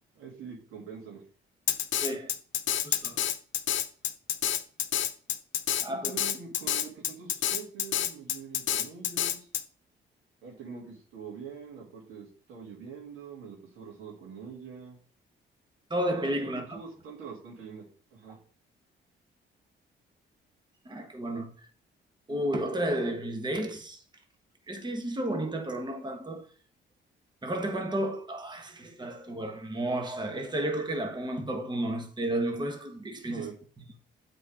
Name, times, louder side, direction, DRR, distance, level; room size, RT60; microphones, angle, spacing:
voice 1, 0.2-1.2 5.9-9.5 10.4-15.0 16.7-17.8 18.1-18.4 33.3-33.5, right 6 dB, 85° right, 2.6 m, -44 dB
Drum kit, 1.7-9.6, left 11 dB, 70° left, 0.7 m, -28 dB
voice 2, 2.0-2.3 2.8-3.2 5.8-6.1 15.9-16.8 20.8-21.5 22.3-24.0 24.7-26.5 27.4-33.5, right 1 dB, 20° right, 1.5 m, -32 dB
8.0 x 4.4 x 5.0 m
cardioid pair, 90°, 20 cm